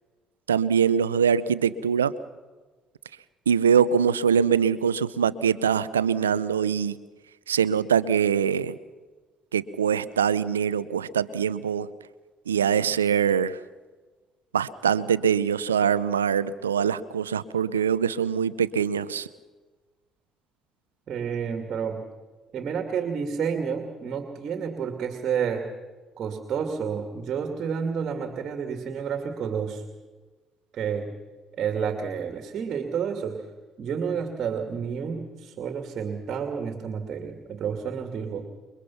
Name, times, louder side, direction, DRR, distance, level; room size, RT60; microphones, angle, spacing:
voice 1, 0.5-2.1 3.5-7.0 7.5-8.8 9.5-11.9 12.5-13.6 14.5-19.3, right 7 dB, 90° right, 17 dB, 0.6 m, -23 dB
voice 2, 21.1-22.1 22.5-25.7 26.2-29.8 30.7-31.1 31.6-33.5 33.8-38.4, right 7 dB, 50° right, 5 dB, 2.6 m, -30 dB
28.0 x 23.0 x 5.9 m, 1.3 s
hypercardioid pair, 50°, 0 cm